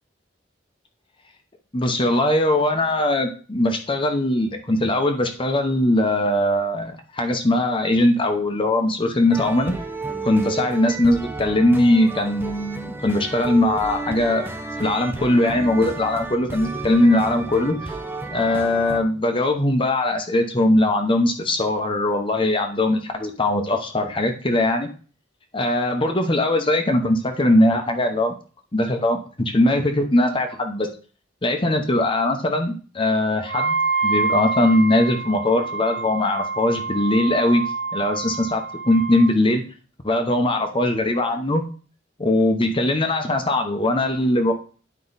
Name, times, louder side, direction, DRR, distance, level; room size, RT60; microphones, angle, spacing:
voice 1, 1.7-9.7 10.2-14.4 14.8-17.8 18.3-24.9 25.5-28.4 28.7-30.9 31.4-33.8 34.0-37.6 37.9-39.6 40.0-41.6 42.2-44.5, left 1 dB, 30° left, 5 dB, 0.9 m, -20 dB
sound 1, 9.3-19.0, right 3 dB, 10° right, 0.8 m, -32 dB
Wind instrument woodwind instrument, 33.5-39.3, right 4 dB, 65° right, 0.8 m, -26 dB
9.7 x 4.6 x 4.1 m, 0.39 s
head